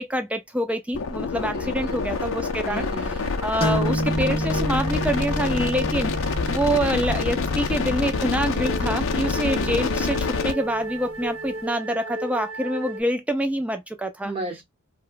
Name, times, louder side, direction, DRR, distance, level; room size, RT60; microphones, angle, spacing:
voice 1, 0.0-2.9 3.4-6.1 6.5-14.3, equal, 5° right, 0.3 m, -26 dB
sound 1, 0.9-10.5, left 4 dB, 70° left, 0.4 m, -27 dB
sound 2, 1.3-13.0, equal, 70° right, 0.7 m, -36 dB
voice 2, 1.5-2.0 2.6-3.5 9.5-9.8 14.2-14.6, right 2 dB, 25° right, 0.9 m, -35 dB
sound 3, 3.6-11.1, right 1 dB, 25° left, 0.6 m, -31 dB
2.9 x 2.1 x 2.4 m
head